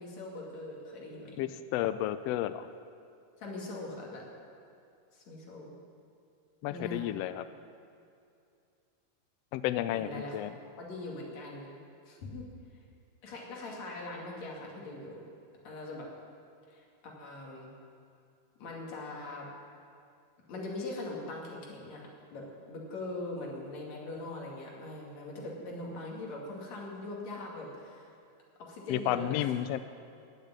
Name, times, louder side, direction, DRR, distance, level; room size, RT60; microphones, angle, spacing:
voice 1, 0.0-1.4 3.4-4.2 5.1-5.7 6.7-7.2 9.9-10.4 10.8-11.8 12.1-12.5 13.2-15.2 15.6-16.1 16.7-17.7 18.6-19.5 20.5-28.1 28.6-29.5, left 2 dB, 65° left, -2 dB, 3.5 m, -41 dB
voice 2, 1.4-2.7 6.6-7.4 9.5-10.5 28.9-29.8, left 12 dB, 80° left, 12 dB, 1.4 m, -32 dB
15.0 x 6.9 x 9.7 m, 2.5 s
omnidirectional pair, 3.3 m